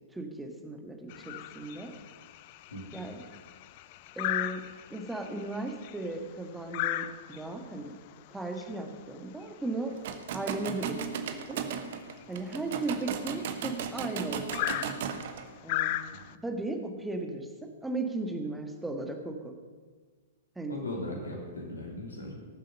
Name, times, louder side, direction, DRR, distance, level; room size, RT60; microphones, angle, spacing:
voice 1, 0.1-1.9 2.9-3.2 4.1-4.6 4.9-7.9 8.3-9.9 10.3-11.6 12.3-14.7 15.6-16.0 16.4-19.5 20.5-20.8, right 2 dB, 5° right, 4 dB, 1.5 m, -36 dB
sound 1, 1.1-16.4, left 15 dB, 40° left, 0.4 m, -38 dB
sound 2, 9.9-15.4, right 8 dB, 50° right, 1.0 m, -36 dB
voice 2, 20.7-22.3, left 1 dB, 70° left, 0 dB, 2.9 m, -38 dB
18.0 x 7.5 x 5.4 m, 1.5 s
figure-of-eight pair, 110°, 0 cm